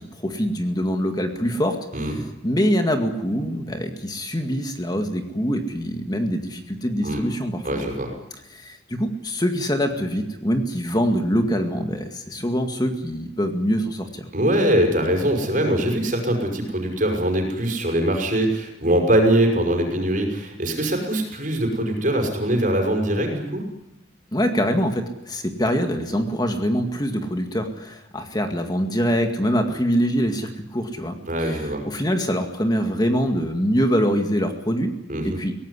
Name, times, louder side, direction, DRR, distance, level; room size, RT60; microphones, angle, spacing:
voice 1, 0.0-1.8 2.4-7.8 8.5-14.3 24.3-31.2 31.4-34.9 35.2-35.5, equal, 20° left, 5 dB, 2.0 m, -24 dB
voice 2, 7.6-8.1 14.3-23.6 31.3-31.8 35.1-35.4, right 1 dB, 40° right, 3 dB, 5.8 m, -22 dB
22.5 x 18.0 x 9.9 m, 0.92 s
head